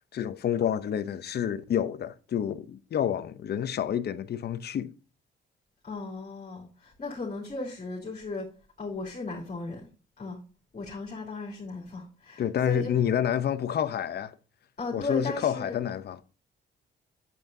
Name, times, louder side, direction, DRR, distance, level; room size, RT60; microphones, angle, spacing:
voice 1, 0.1-4.9 12.4-14.3 14.9-16.2, left 9 dB, 55° left, 0.7 m, -28 dB
voice 2, 5.8-8.5 8.8-9.9 10.2-10.4 10.7-13.1 14.8-15.8, left 3 dB, 40° left, 3.0 m, -36 dB
8.8 x 7.8 x 2.7 m
cardioid pair, 90°, 20 cm